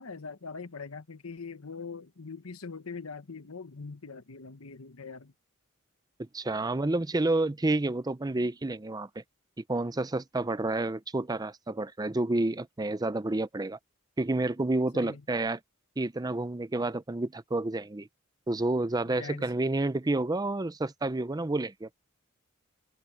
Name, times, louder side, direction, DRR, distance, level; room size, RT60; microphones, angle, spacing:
voice 1, 0.0-5.3 14.9-15.2 19.1-19.5, left 4 dB, 85° left, 1.1 m, -42 dB
voice 2, 6.2-9.2 9.7-13.8 14.2-15.6 16.0-18.1 18.5-21.9, right 2 dB, 20° right, 0.5 m, -29 dB
open air
head